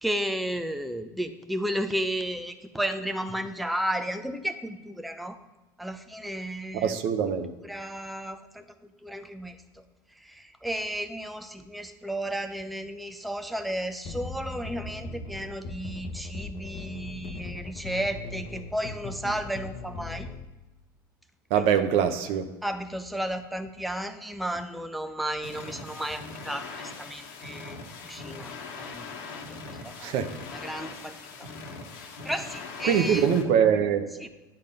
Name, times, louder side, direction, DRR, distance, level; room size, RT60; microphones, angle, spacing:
voice 1, 0.0-5.4 5.8-7.0 7.6-8.6 9.0-9.8 10.2-20.3 21.6-21.7 22.6-29.2 29.7-30.2 30.5-31.1 31.4-31.5 32.2-33.3 34.2-34.3, right 1 dB, ahead, 0.6 m, -33 dB
voice 2, 6.8-7.5 21.5-22.5 30.0-30.3 32.8-34.1, right 8 dB, 60° right, 0.9 m, -23 dB
sound 1, 14.0-20.4, left 3 dB, 55° left, 0.9 m, -39 dB
sound 2, 25.4-33.4, left 4 dB, 75° left, 1.3 m, -41 dB
10.0 x 5.2 x 5.3 m
hypercardioid pair, 80°, 11 cm